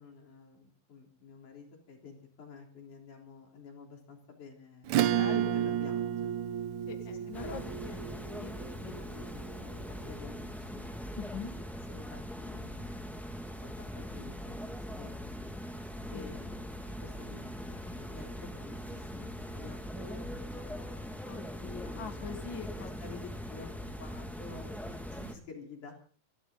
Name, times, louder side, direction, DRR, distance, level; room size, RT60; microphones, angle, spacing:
voice 1, 0.0-6.3 7.1-7.6 9.0-11.0 11.6-13.0 13.6-15.4 16.1-16.7 17.0-22.2 23.0-26.0, left 5 dB, 60° left, 1 dB, 5.1 m, -50 dB
Acoustic guitar / Strum, 4.9-9.8, right 10 dB, 70° right, 2.1 m, -32 dB
voice 2, 5.0-5.6 6.9-8.0 8.4-9.1 11.2-11.5 16.1-16.3 21.2-23.2, left 6 dB, 45° left, 6 dB, 1.9 m, -43 dB
sound 1, 7.3-25.3, equal, ahead, 0.6 m, -41 dB
29.0 x 11.5 x 3.8 m, 0.42 s
omnidirectional pair, 3.9 m